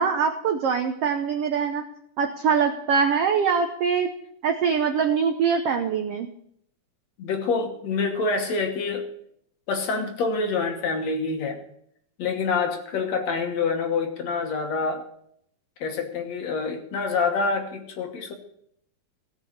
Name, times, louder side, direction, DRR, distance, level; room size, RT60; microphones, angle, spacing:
voice 1, 0.0-1.8 2.2-4.1 4.4-6.3, right 6 dB, 80° right, 5 dB, 1.3 m, -23 dB
voice 2, 7.2-9.1 9.7-11.6 12.2-15.1 15.8-18.3, left 4 dB, 60° left, 4 dB, 2.2 m, -26 dB
17.0 x 6.2 x 6.5 m, 0.71 s
omnidirectional pair, 3.9 m